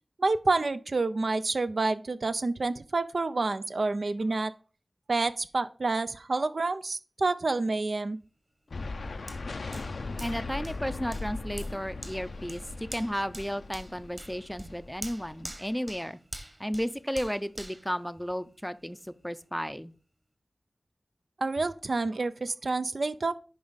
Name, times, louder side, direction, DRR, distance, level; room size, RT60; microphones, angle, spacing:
voice 1, 0.2-4.5 5.1-8.2 21.4-23.3, right 3 dB, 70° right, 12 dB, 0.5 m, -28 dB
sound 1, 8.7-15.7, left 3 dB, 85° left, 0.5 m, -39 dB
Hands, 9.3-18.8 19.3-19.4, right 1 dB, 25° right, 1.3 m, -46 dB
voice 2, 10.2-12.6 12.9-16.2 16.6-19.0 19.2-19.9, equal, 5° left, 13 dB, 0.5 m, -33 dB
10.0 x 3.5 x 4.0 m, 0.37 s
wide cardioid pair, 55°, 0 cm